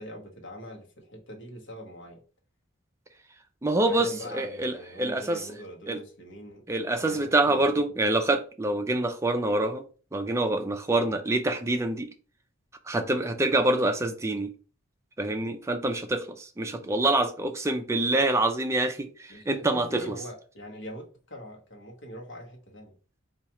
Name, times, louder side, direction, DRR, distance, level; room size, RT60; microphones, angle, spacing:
voice 1, 0.0-2.2 3.8-6.6 6.9-7.9 19.3-22.9, equal, 55° left, 0.9 m, -43 dB
voice 2, 3.6-5.5 5.9-6.0 6.7-9.8 10.1-12.1 12.9-14.5 15.2-20.1, right 2 dB, 15° right, 0.4 m, -26 dB
4.2 x 2.4 x 2.9 m
head